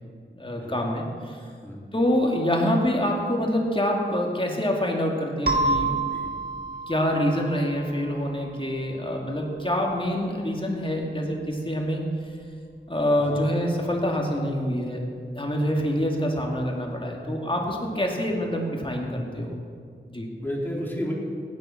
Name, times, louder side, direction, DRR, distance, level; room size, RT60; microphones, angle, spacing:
voice 1, 0.3-1.4 1.9-6.0 6.9-12.0 12.9-15.0 15.3-19.6 20.1-20.3, equal, 25° left, 0 dB, 2.4 m, -26 dB
sound 1, 5.5-9.9, right 3 dB, 50° right, 2.3 m, -30 dB
voice 2, 20.4-21.1, equal, 10° left, -3 dB, 3.6 m, -32 dB
16.5 x 10.5 x 5.9 m, 2.1 s
wide cardioid pair, 70°, 19 cm